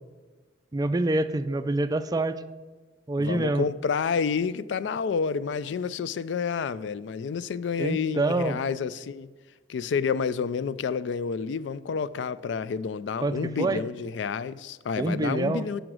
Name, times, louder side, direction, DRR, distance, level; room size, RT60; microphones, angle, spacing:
voice 1, 0.7-2.4 3.1-3.7 7.8-8.6 13.2-13.8 15.0-15.6, right 2 dB, 20° right, 0.4 m, -26 dB
voice 2, 3.2-9.3 9.7-15.8, left 5 dB, 70° left, 0.3 m, -29 dB
11.0 x 5.1 x 6.1 m
head